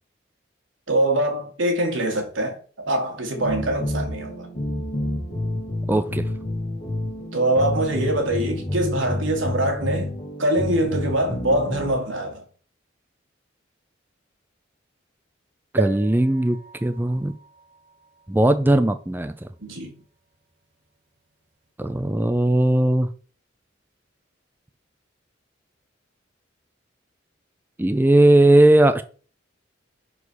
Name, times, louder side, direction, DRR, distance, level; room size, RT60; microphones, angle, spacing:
voice 1, 0.9-4.5 7.3-10.1 10.4-12.4 19.6-20.0, right 1 dB, 80° right, 2.1 m, -23 dB
sound 1, 3.3-11.9, left 1 dB, 30° left, 2.6 m, -29 dB
voice 2, 5.9-6.3 15.7-17.3 18.3-19.5 21.8-23.1 27.8-29.0, right 1 dB, 10° right, 0.4 m, -18 dB
sound 2, 15.8-19.4 20.0-20.1 20.3-20.4, right 4 dB, 60° right, 1.2 m, -34 dB
5.4 x 4.8 x 6.3 m
head